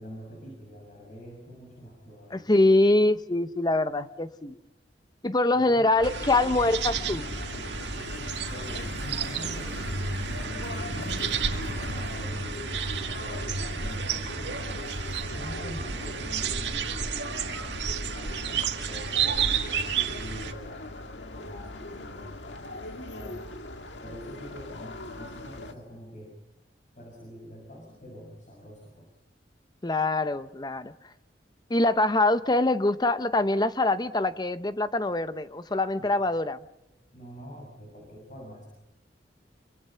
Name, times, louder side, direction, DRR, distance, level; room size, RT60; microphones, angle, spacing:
voice 1, 0.0-2.5 5.5-5.9 8.5-14.9 15.2-17.5 18.1-20.9 21.3-23.4 24.0-26.4 26.9-29.1 36.0-36.1 37.1-38.7, equal, 45° left, 0 dB, 6.5 m, -45 dB
voice 2, 2.3-4.6 5.2-7.3 29.8-30.9 31.7-36.6, left 2 dB, 25° left, 12 dB, 0.7 m, -24 dB
sound 1, 6.0-25.7, left 1 dB, 85° left, 1.8 m, -40 dB
sound 2, 6.0-20.5, right 6 dB, 75° right, 2.0 m, -31 dB
26.5 x 25.5 x 5.7 m, 0.92 s
head